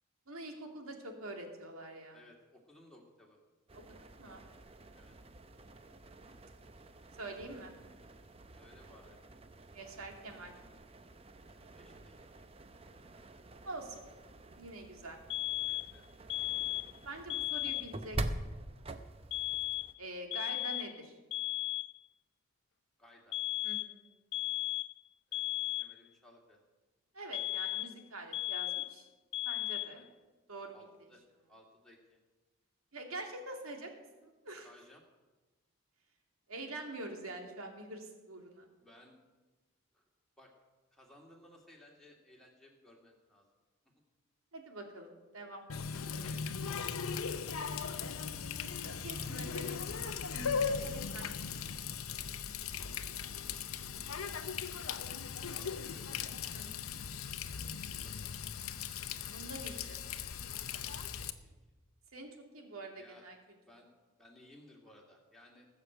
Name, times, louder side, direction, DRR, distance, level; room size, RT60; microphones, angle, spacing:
voice 1, 0.3-2.2 4.2-4.5 7.2-7.7 9.7-10.5 13.6-14.1 14.5-15.2 17.0-18.2 20.0-21.1 23.6-24.0 27.1-29.1 29.4-30.0 30.5-30.7 32.9-33.9 34.4-34.7 36.5-38.6 44.5-45.7 48.8-51.4 56.5-57.0 59.2-60.1 62.1-63.4, right 2 dB, 90° right, 3 dB, 2.5 m, -45 dB
voice 2, 2.1-3.4 4.9-5.1 8.5-9.2 11.7-12.1 15.5-16.0 16.4-16.5 23.0-23.4 25.3-26.6 29.8-30.1 30.7-31.2 31.5-32.2 34.6-35.0 38.8-39.2 39.9-40.0 40.4-40.5 40.9-43.5 45.7-47.4 55.4-56.2 57.8-58.3 61.2-61.5 63.0-63.3 63.6-63.9 64.2-65.7, left 1 dB, ahead, -2 dB, 2.3 m, -60 dB
sound 1, 3.7-19.9, right 1 dB, 25° right, 0.7 m, -46 dB
sound 2, 15.3-16.0 16.3-17.0 17.3-18.0 19.3-20.0 20.3-21.0 21.3-22.0 23.3-24.0 24.3-25.0 25.3-26.0 27.3-28.0 28.3-29.0 29.3-30.0, left 17 dB, 55° left, 0.5 m, -36 dB
Water tap faucet, 45.7-61.3, left 6 dB, 85° left, 0.8 m, -38 dB
19.5 x 6.5 x 8.0 m, 1.2 s
head